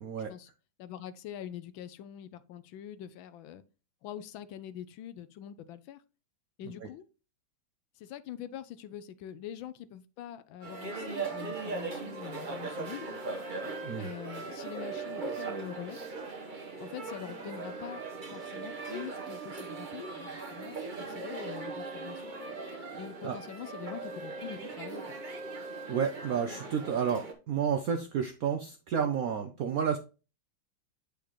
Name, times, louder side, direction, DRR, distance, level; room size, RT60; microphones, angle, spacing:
voice 1, 0.0-0.3 13.8-14.1 22.9-23.4 25.6-30.0, right 7 dB, 75° right, 0.8 m, -31 dB
voice 2, 0.8-3.6 4.0-6.0 6.6-7.0 8.0-13.1 14.0-16.0 16.8-18.0 18.3-22.3 22.9-25.1, left 10 dB, 80° left, 1.4 m, -44 dB
sound 1, 10.6-27.3, right 3 dB, 35° right, 0.9 m, -39 dB
8.3 x 5.0 x 3.0 m
omnidirectional pair, 2.2 m